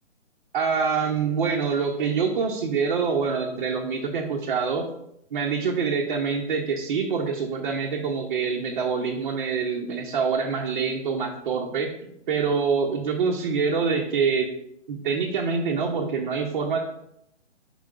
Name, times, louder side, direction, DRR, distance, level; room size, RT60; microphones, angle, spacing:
voice 1, 0.5-4.9 5.3-14.5 14.9-16.8, right 5 dB, 40° right, -1 dB, 0.9 m, -25 dB
5.5 x 4.8 x 4.8 m, 0.78 s
figure-of-eight pair, 140°, 36 cm